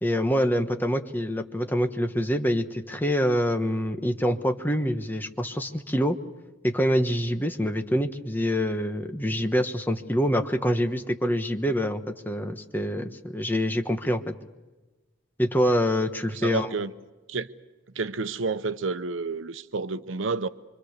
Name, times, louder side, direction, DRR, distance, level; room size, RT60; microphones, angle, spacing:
voice 1, 0.0-6.2 6.6-14.3 15.4-16.7, equal, 10° left, 1.2 m, -25 dB
voice 2, 16.3-16.9 17.3-17.5 17.9-20.5, right 4 dB, 80° right, 0.8 m, -30 dB
25.5 x 25.5 x 6.7 m
head